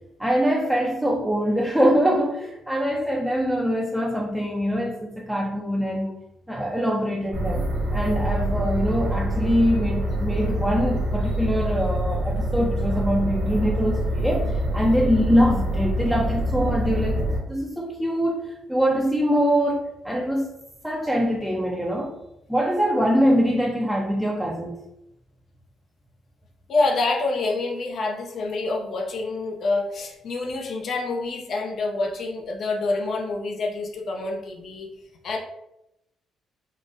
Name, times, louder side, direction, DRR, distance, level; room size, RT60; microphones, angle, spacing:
voice 1, 0.2-6.1 6.5-17.1 17.5-20.5 20.8-22.1 22.5-24.8, equal, ahead, -3 dB, 0.4 m, -23 dB
sound 1, 7.3-17.4, equal, 75° right, 0.9 m, -25 dB
voice 2, 26.7-34.9 35.2-35.4, left 3 dB, 60° left, 1 dB, 0.4 m, -27 dB
3.7 x 2.0 x 2.5 m, 0.85 s
cardioid pair, 90°, 0 cm